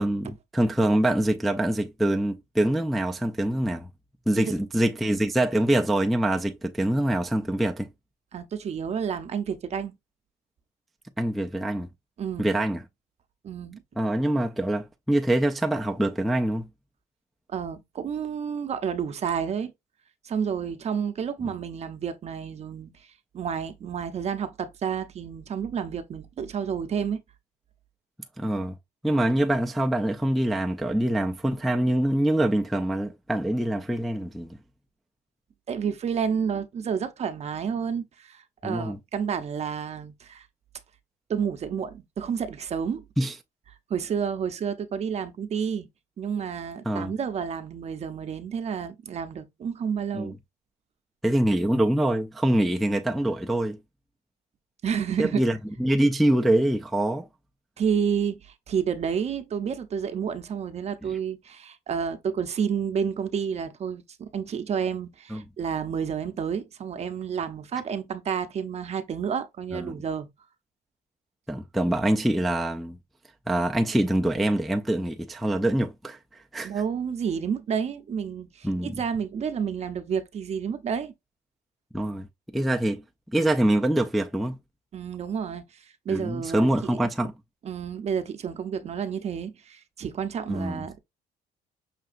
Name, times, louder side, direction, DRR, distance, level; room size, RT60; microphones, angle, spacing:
voice 1, 0.0-3.9 4.3-7.9 11.2-11.9 12.4-12.8 14.0-16.7 21.4-21.5 28.4-28.8 29.0-34.6 38.6-39.0 43.2-43.4 46.9-47.1 50.1-50.3 51.2-53.8 55.2-57.3 61.1-61.2 65.3-65.4 69.7-70.0 71.5-73.0 73.5-76.7 78.6-78.9 81.9-82.3 82.5-83.0 83.3-84.6 86.1-87.3 90.5-90.8, right 1 dB, ahead, 0.3 m, -25 dB
voice 2, 8.3-9.9 12.2-12.5 13.4-13.8 17.5-19.7 20.2-22.9 23.3-27.2 35.7-40.5 41.3-43.0 43.9-45.9 46.2-50.3 54.8-55.4 57.8-70.3 76.6-81.1 84.9-87.0 87.6-91.0, right 7 dB, 40° right, 0.6 m, -30 dB
5.7 x 2.7 x 2.5 m
cardioid pair, 110°, 17 cm